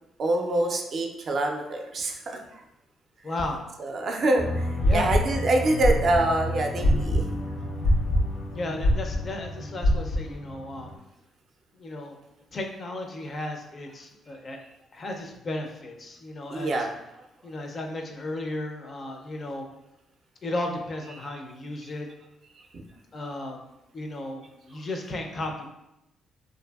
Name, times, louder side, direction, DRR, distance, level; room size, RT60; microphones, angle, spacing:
voice 1, 0.2-2.4 3.8-7.2 16.5-16.9, right 2 dB, 55° right, 3 dB, 0.4 m, -25 dB
voice 2, 3.2-3.7 4.8-5.1 8.5-10.9 11.8-12.2 12.5-14.6 14.9-16.9 17.4-19.7 20.4-22.1 23.1-23.6 23.9-25.6, left 2 dB, 40° left, 3 dB, 0.4 m, -34 dB
sound 1, 4.4-10.9, equal, 80° left, 0.8 m, -26 dB
2.5 x 2.5 x 2.2 m, 0.90 s
cardioid pair, 90°, 0 cm